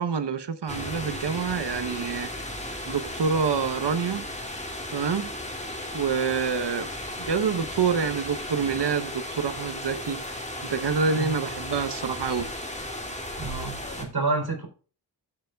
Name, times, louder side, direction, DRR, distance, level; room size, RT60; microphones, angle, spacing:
voice 1, 0.0-2.3 2.9-4.2 4.9-5.3 5.9-6.9 7.2-10.2 10.6-12.5, right 6 dB, 75° right, 1.1 m, -27 dB
sound 1, 0.7-14.0, left 1 dB, 15° left, 2.6 m, -35 dB
voice 2, 13.4-14.7, right 3 dB, 60° right, 3.8 m, -29 dB
14.5 x 7.0 x 2.4 m
wide cardioid pair, 60°, 41 cm